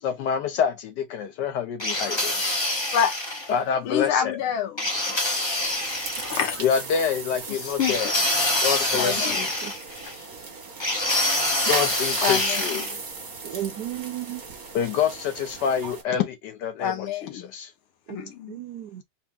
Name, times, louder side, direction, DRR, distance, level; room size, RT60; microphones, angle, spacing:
voice 1, 0.0-2.3 3.5-4.4 6.6-8.1 8.6-9.5 11.7-13.0 14.7-17.7, left 7 dB, 70° left, 1.1 m, -27 dB
sound 1, 1.8-3.5 4.8-6.4 7.8-10.1 10.8-12.9, left 1 dB, 20° left, 0.8 m, -26 dB
voice 2, 3.8-5.2 6.3-6.6 7.5-8.0 8.5-8.6 9.0-9.5 10.0-10.3 12.2-12.8 16.8-17.5 18.1-18.6, left 8 dB, 90° left, 1.8 m, -28 dB
sound 2, 5.6-16.0, right 4 dB, 50° right, 1.6 m, -36 dB
voice 3, 13.4-14.4 18.1-19.0, right 12 dB, 70° right, 1.0 m, -34 dB
4.3 x 2.1 x 3.6 m
omnidirectional pair, 2.2 m